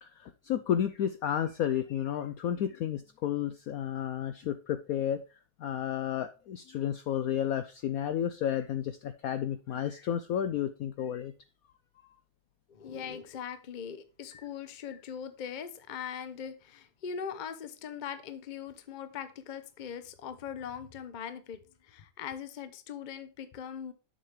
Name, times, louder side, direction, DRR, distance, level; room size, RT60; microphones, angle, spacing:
voice 1, 0.0-5.2 5.6-11.3 12.0-12.1 14.3-14.4, left 10 dB, 85° left, 11 dB, 0.7 m, -32 dB
voice 2, 12.7-23.9, left 7 dB, 50° left, 11 dB, 0.5 m, -41 dB
7.4 x 6.7 x 3.2 m, 0.33 s
omnidirectional pair, 2.1 m